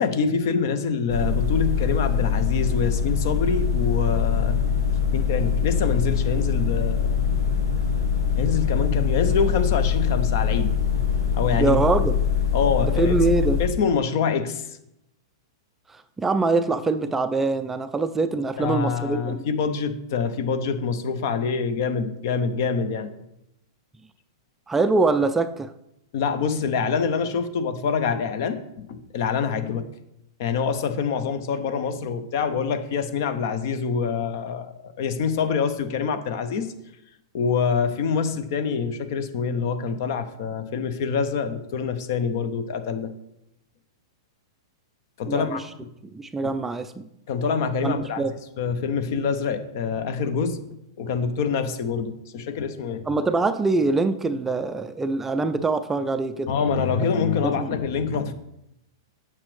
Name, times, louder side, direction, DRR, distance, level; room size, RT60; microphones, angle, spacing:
voice 1, 0.0-4.6 5.1-7.2 8.4-10.7 11.3-11.8 12.5-13.1 13.6-14.8 18.6-23.1 26.1-29.9 30.4-36.7 37.3-43.1 45.2-45.6 46.4-46.5 47.3-48.3 48.6-50.6 51.0-53.0 56.5-58.3, left 5 dB, 50° left, 10 dB, 0.8 m, -25 dB
sound 1, 1.1-13.7, left 7 dB, 75° left, 1.4 m, -23 dB
voice 2, 11.6-12.1 13.0-13.6 16.2-19.4 24.7-25.7 45.3-45.6 46.1-47.1 47.8-48.3 53.1-56.5 57.4-57.7, right 3 dB, 10° right, 10 dB, 0.4 m, -23 dB
8.6 x 6.0 x 3.3 m, 0.82 s
figure-of-eight pair, 105°, 2 cm